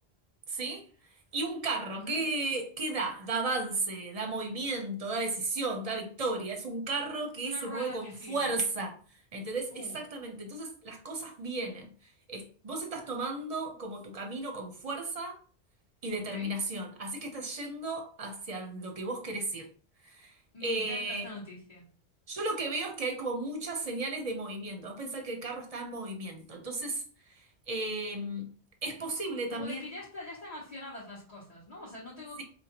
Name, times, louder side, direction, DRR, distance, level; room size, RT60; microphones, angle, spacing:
voice 1, 0.5-0.8 1.3-9.0 9.3-11.9 12.3-15.3 16.0-19.7 20.0-20.3 20.6-21.2 22.3-27.0 27.7-28.4 28.8-29.8 32.4-32.5, right 2 dB, 35° right, 3 dB, 0.8 m, -34 dB
voice 2, 7.4-8.5 9.7-10.0 16.1-16.5 20.5-21.9 29.5-32.4, left 2 dB, 35° left, -7 dB, 1.1 m, -43 dB
4.9 x 2.2 x 2.9 m, 0.42 s
omnidirectional pair, 1.1 m